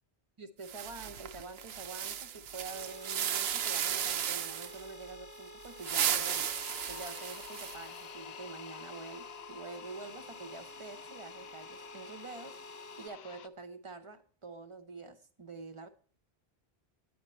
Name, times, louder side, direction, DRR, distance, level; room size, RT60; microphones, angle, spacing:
voice 1, 0.4-6.5 6.9-12.6 13.0-15.9, right 3 dB, 35° right, 10 dB, 0.8 m, -46 dB
sound 1, 0.6-4.8 5.6-8.0, right 9 dB, 75° right, 0.8 m, -35 dB
sound 2, 2.7-13.1, equal, 20° left, 0.9 m, -51 dB
sound 3, 5.8-13.5, left 10 dB, 75° left, 0.8 m, -50 dB
10.0 x 8.9 x 4.3 m, 0.43 s
omnidirectional pair, 1.0 m